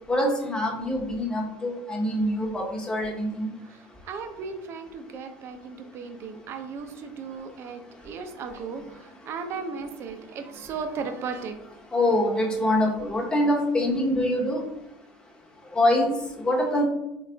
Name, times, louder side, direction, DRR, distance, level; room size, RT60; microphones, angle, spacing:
voice 1, 0.1-3.5 11.9-14.6 15.7-16.8, left 1 dB, 15° left, 0 dB, 0.8 m, -24 dB
voice 2, 3.7-11.6, right 5 dB, 50° right, 7 dB, 0.5 m, -36 dB
3.9 x 3.4 x 2.2 m, 0.88 s
supercardioid pair, 100°, 6 cm